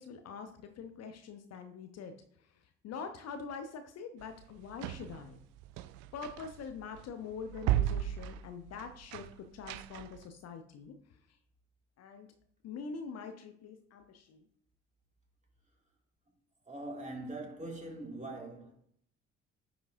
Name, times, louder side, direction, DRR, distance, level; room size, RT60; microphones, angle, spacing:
voice 1, 0.0-5.4 6.1-11.4 12.0-12.3 12.6-14.5, left 5 dB, 40° left, 0.7 m, -45 dB
sound 1, 4.2-10.3, right 13 dB, 50° right, 0.4 m, -36 dB
voice 2, 16.7-18.7, right 2 dB, 20° right, 2.3 m, -42 dB
9.5 x 4.9 x 2.6 m
figure-of-eight pair, 50°, 38 cm